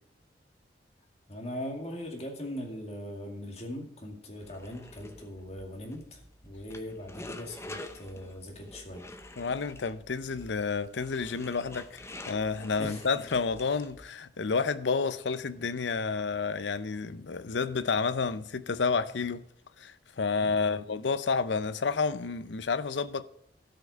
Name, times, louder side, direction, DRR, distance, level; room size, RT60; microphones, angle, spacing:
voice 1, 1.3-9.1 12.8-13.2 20.4-20.8, left 1 dB, 35° left, 2.3 m, -40 dB
sound 1, 4.4-14.1, left 2 dB, 15° left, 0.8 m, -47 dB
voice 2, 9.4-19.4 19.8-23.2, left 4 dB, 90° left, 0.6 m, -30 dB
12.5 x 5.8 x 6.3 m
head